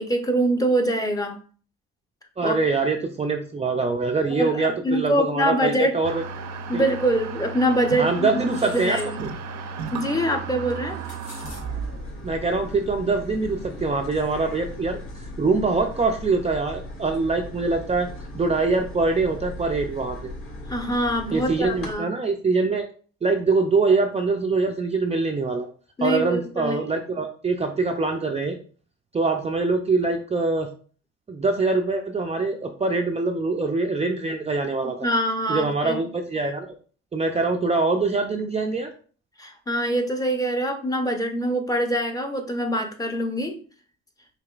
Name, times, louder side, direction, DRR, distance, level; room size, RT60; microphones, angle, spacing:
voice 1, 0.0-1.4 2.4-2.6 4.4-5.9 6.7-8.3 8.7-9.2 9.9-11.0 20.7-22.1 26.0-26.8 35.0-36.1 39.4-43.6, right 1 dB, 10° left, 4 dB, 0.7 m, -24 dB
voice 2, 2.4-6.2 6.7-6.8 8.0-9.3 12.2-15.0 15.4-18.1 18.3-20.3 21.3-22.8 23.2-25.7 26.0-28.6 29.1-30.7 31.3-35.0 35.5-36.7 37.1-38.9, right 3 dB, 20° right, 2 dB, 0.4 m, -24 dB
sound 1, 6.0-14.2, right 5 dB, 70° right, 0.7 m, -35 dB
sound 2, 8.5-9.1 10.7-11.6, left 1 dB, 85° left, 1.3 m, -43 dB
sound 3, 11.4-21.9, left 1 dB, 45° left, 1.8 m, -38 dB
4.8 x 3.1 x 2.4 m, 0.42 s
cardioid pair, 90°, 30 cm